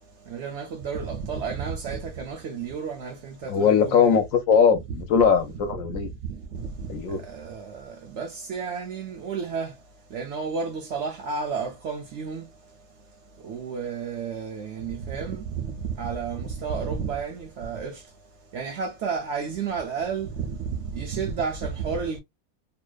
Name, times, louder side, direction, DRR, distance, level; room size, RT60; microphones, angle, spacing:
voice 1, 0.3-4.2 6.5-6.9 7.3-9.7 10.1-12.5 13.4-18.0 18.5-22.2, right 5 dB, 65° right, 0.7 m, -31 dB
voice 2, 3.5-6.1 6.9-7.2, left 6 dB, 70° left, 0.9 m, -20 dB
2.7 x 2.1 x 2.2 m
omnidirectional pair, 1.6 m